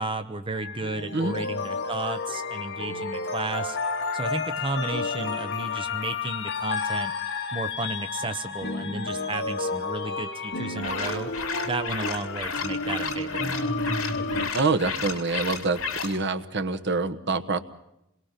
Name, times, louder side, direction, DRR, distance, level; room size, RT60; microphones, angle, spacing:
voice 1, 0.0-3.8 4.1-7.1 7.5-11.3 11.6-13.9, right 3 dB, 25° right, 8 dB, 0.8 m, -33 dB
sound 1, 0.5-14.5, left 3 dB, 55° left, 2.3 m, -31 dB
sound 2, 10.8-16.2, left 5 dB, 70° left, 2.6 m, -33 dB
voice 2, 14.5-17.6, right 3 dB, 55° right, 8 dB, 1.3 m, -26 dB
27.5 x 21.5 x 5.8 m, 0.87 s
head